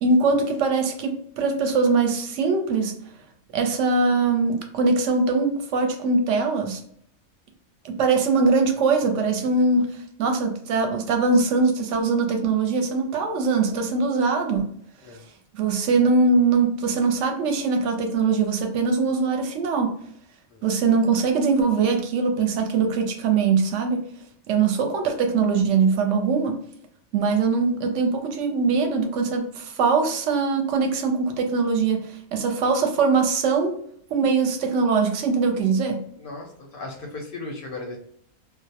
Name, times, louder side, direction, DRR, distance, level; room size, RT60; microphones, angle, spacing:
voice 1, 0.0-2.9 3.5-6.8 7.8-14.7 15.5-19.9 20.6-24.0 24.5-26.6 27.1-33.7 34.1-36.0, right 4 dB, 70° right, 4 dB, 0.8 m, -22 dB
voice 2, 36.2-38.0, left 2 dB, 60° left, 0 dB, 0.6 m, -36 dB
2.3 x 2.0 x 2.7 m, 0.65 s
omnidirectional pair, 1.4 m